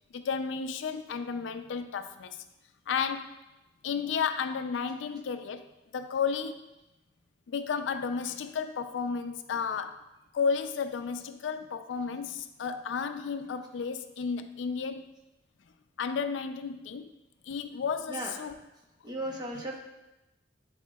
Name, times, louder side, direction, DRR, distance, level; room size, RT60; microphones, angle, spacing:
voice 1, 0.1-2.4 2.9-3.4 3.8-6.7 7.5-10.0 10.3-15.1 16.0-17.1 17.4-18.6, left 6 dB, 90° left, 9 dB, 0.4 m, -33 dB
voice 2, 19.0-19.8, right 1 dB, 20° right, -1 dB, 0.8 m, -35 dB
10.0 x 4.3 x 2.3 m, 0.97 s
head